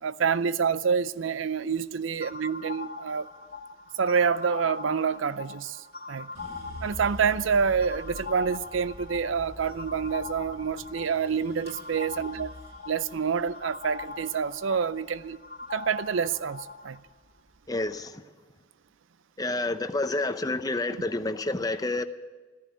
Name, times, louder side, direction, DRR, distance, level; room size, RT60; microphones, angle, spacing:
voice 1, 0.0-3.3 4.0-6.3 6.8-12.5 12.9-15.4 15.7-17.0, right 6 dB, 90° right, 0.5 m, -27 dB
sound 1, 2.2-17.0, left 4 dB, 50° left, 1.6 m, -42 dB
sound 2, 6.3-16.5 17.0-17.8, equal, 30° right, 6.6 m, -46 dB
voice 2, 17.7-18.2 19.4-22.0, left 2 dB, 20° left, 0.6 m, -29 dB
14.5 x 10.5 x 9.2 m
head